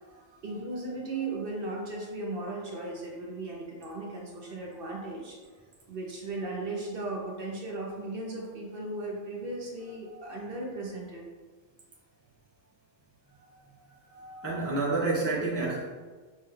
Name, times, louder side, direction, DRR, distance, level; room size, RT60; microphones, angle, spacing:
voice 1, 0.4-5.4 5.9-11.2, right 2 dB, 55° right, -2 dB, 0.7 m, -36 dB
voice 2, 14.1-15.9, right 3 dB, 20° left, -6 dB, 0.5 m, -30 dB
5.9 x 2.2 x 3.1 m, 1.4 s
omnidirectional pair, 1.3 m